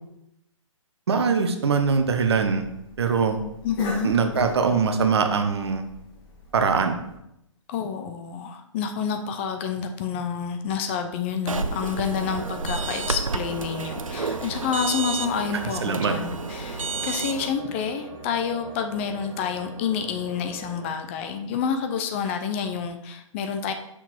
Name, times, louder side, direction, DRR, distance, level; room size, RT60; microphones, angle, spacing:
voice 1, 1.1-2.7 3.0-3.4 4.0-5.8 6.5-7.0 15.8-16.1, right 5 dB, 50° right, 7 dB, 1.0 m, -22 dB
Cough, 1.7-7.2, left 1 dB, 45° left, 2.1 m, -42 dB
voice 2, 3.6-4.1 7.7-23.7, left 6 dB, 20° left, 6 dB, 0.5 m, -28 dB
sound 1, 11.5-17.5, right 4 dB, 80° right, 0.6 m, -31 dB
sound 2, 12.1-20.9, right 5 dB, 20° right, 0.7 m, -41 dB
6.3 x 5.9 x 4.3 m, 0.82 s
figure-of-eight pair, 125°, 17 cm